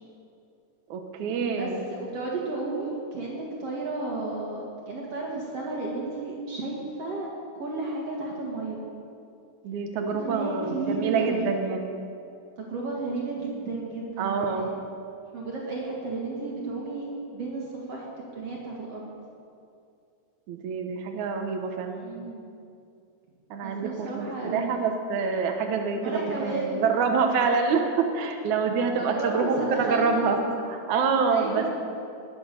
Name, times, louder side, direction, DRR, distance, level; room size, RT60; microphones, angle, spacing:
voice 1, 0.9-1.8 9.6-11.9 14.2-14.7 20.5-22.0 23.5-30.4 30.7-31.7, right 5 dB, 85° right, 4 dB, 2.6 m, -26 dB
voice 2, 1.5-7.3 7.5-8.8 10.2-11.6 12.6-14.6 15.3-18.1 18.3-19.0 22.0-22.5 23.6-24.9 26.0-26.9 29.0-30.5 31.3-31.7, right 3 dB, 55° right, -3 dB, 3.0 m, -32 dB
20.5 x 7.9 x 6.9 m, 2.4 s
omnidirectional pair, 3.3 m